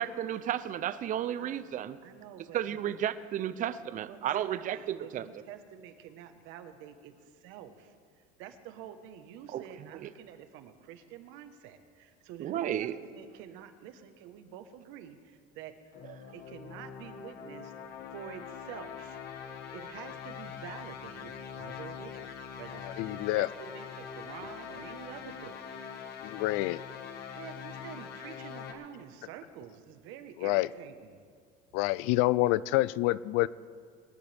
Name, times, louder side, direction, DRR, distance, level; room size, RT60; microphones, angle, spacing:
voice 1, 0.0-2.0 2.5-5.3 9.5-9.6 10.0-10.1 12.4-13.0, right 10 dB, 40° right, 0.6 m, -33 dB
voice 2, 2.0-3.0 3.6-3.7 4.1-16.0 16.3-17.7 18.1-19.2 19.7-25.6 27.3-31.2, right 9 dB, 70° right, 1.3 m, -48 dB
sound 1, 15.9-28.7, left 7 dB, 50° left, 1.6 m, -43 dB
voice 3, 23.0-23.5 26.2-26.8 30.4-30.7 31.7-33.5, left 18 dB, 75° left, 0.4 m, -27 dB
22.0 x 11.5 x 3.5 m
cardioid pair, 125°, 21 cm